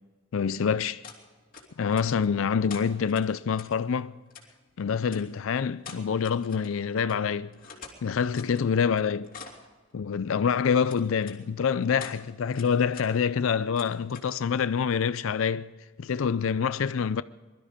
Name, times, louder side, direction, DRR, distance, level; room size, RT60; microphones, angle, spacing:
voice 1, 0.3-1.0 1.8-4.2 4.8-7.6 8.0-9.3 9.9-15.7 16.0-17.2, left 6 dB, 70° left, 0.4 m, -26 dB
sound 1, 1.0-1.2 1.5-2.3 2.7-3.7 4.3-4.5 5.1-5.2 5.8-6.8 7.1-7.2 7.5-8.6 9.0-9.7 10.9-11.4 11.8-12.2 12.5-13.1 13.4-14.3, left 5 dB, 40° left, 2.9 m, -46 dB
22.0 x 13.0 x 5.1 m
head